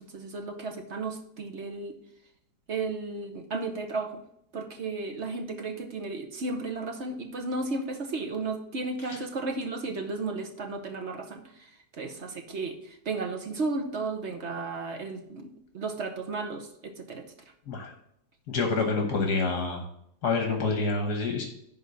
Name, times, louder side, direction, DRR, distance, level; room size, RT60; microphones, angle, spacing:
voice 1, 0.0-2.0 2.7-4.2 4.5-17.2, right 3 dB, 45° right, 5 dB, 1.1 m, -34 dB
voice 2, 18.5-19.8 20.2-21.4, left 3 dB, 65° left, 4 dB, 1.6 m, -27 dB
11.0 x 3.7 x 6.8 m, 0.74 s
omnidirectional pair, 1.9 m